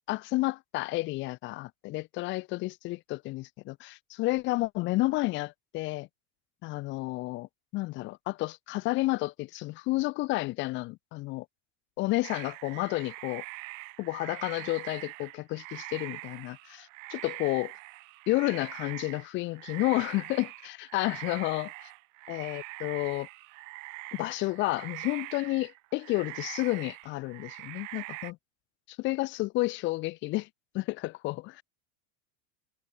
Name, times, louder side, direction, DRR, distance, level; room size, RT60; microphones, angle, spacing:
voice 1, 0.0-6.1 6.6-7.5 7.7-11.4 12.0-13.4 14.0-17.7 18.3-21.9 22.3-23.3 24.1-28.4 28.9-30.5 30.7-31.6, left 20 dB, 25° left, 0.5 m, -31 dB
sound 1, 12.2-28.3, right 28 dB, 60° right, 2.3 m, -43 dB
supercardioid pair, 165°, 43 cm